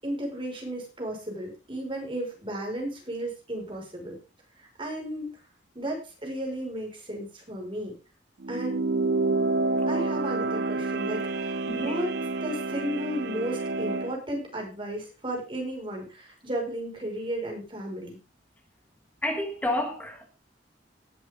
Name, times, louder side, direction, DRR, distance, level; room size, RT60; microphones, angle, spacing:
voice 1, 0.0-4.2 4.6-5.3 5.7-8.0 8.5-8.8 9.9-12.1 12.4-18.2, right 1 dB, 30° right, 5.8 m, -34 dB
sound 1, 8.4-14.2, right 3 dB, 60° right, 0.7 m, -28 dB
voice 2, 11.7-12.0 19.2-20.3, left 1 dB, 10° left, 1.6 m, -30 dB
18.0 x 7.9 x 3.8 m
head